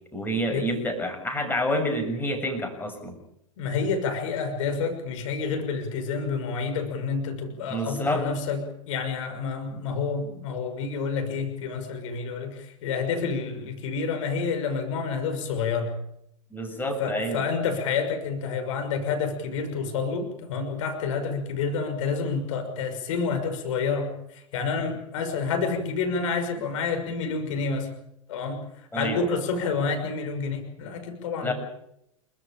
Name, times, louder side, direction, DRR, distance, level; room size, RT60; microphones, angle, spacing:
voice 1, 0.1-3.2 7.7-8.3 16.5-17.5 28.9-29.3 31.4-31.5, equal, 10° left, 4 dB, 7.3 m, -28 dB
voice 2, 3.6-8.6 8.9-15.9 17.0-27.9 28.3-28.6 28.9-31.5, left 5 dB, 65° left, 6 dB, 6.1 m, -29 dB
28.0 x 14.5 x 8.8 m, 0.78 s
hypercardioid pair, 95°, 18 cm